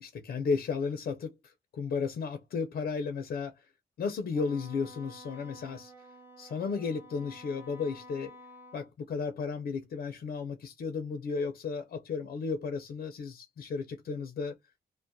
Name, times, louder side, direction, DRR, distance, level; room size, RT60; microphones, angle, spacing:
voice 1, 0.0-3.5 4.0-5.9 6.4-8.3 8.7-14.5, left 5 dB, 50° left, 0.5 m, -34 dB
Wind instrument woodwind instrument, 4.3-8.9, left 1 dB, 10° right, 0.5 m, -51 dB
2.2 x 2.1 x 2.6 m
cardioid pair, 90°, 20 cm